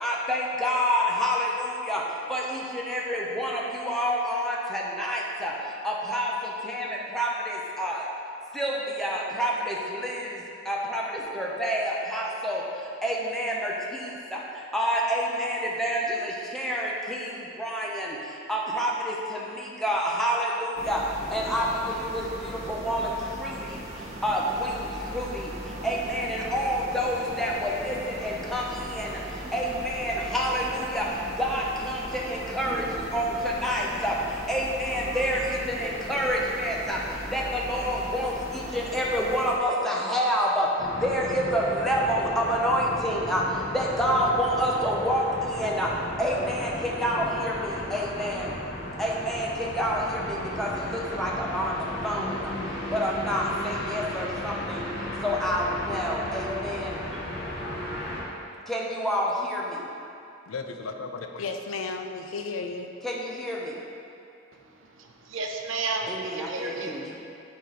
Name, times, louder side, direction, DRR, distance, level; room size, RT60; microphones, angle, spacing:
voice 1, 0.0-2.0 2.3-2.6 2.9-5.5 5.8-6.3 6.6-6.9 7.1-8.0 8.6-9.7 10.0-10.2 10.7-11.0 11.3-12.6 13.0-13.7 14.7-17.2 17.6-18.1 18.5-19.1 19.8-21.0 21.3-21.7 22.1-22.2 22.7-23.0 23.4-23.5 24.2-24.7 25.1-25.2 25.8-28.0 28.2-28.6 28.9-29.1 29.5-31.1 31.4-32.8 33.1-34.1 34.5-37.0 37.3-38.3 38.7-40.7 41.0-43.4 43.7-45.9 46.2-48.5 49.0-49.5 49.8-51.7 52.0-52.3 52.9-54.8 55.2-56.9 58.7-59.6 63.0-63.6 66.1-67.2, equal, ahead, -4 dB, 0.7 m, -27 dB
sound 1, 20.8-39.6, right 1 dB, 35° right, 1.0 m, -38 dB
sound 2, 40.8-58.2, left 1 dB, 55° left, 1.1 m, -35 dB
voice 2, 60.5-63.0, left 4 dB, 85° left, 5 dB, 0.5 m, -34 dB
voice 3, 65.0-67.0, right 3 dB, 75° right, 2 dB, 0.7 m, -32 dB
6.6 x 4.1 x 4.8 m, 2.6 s
head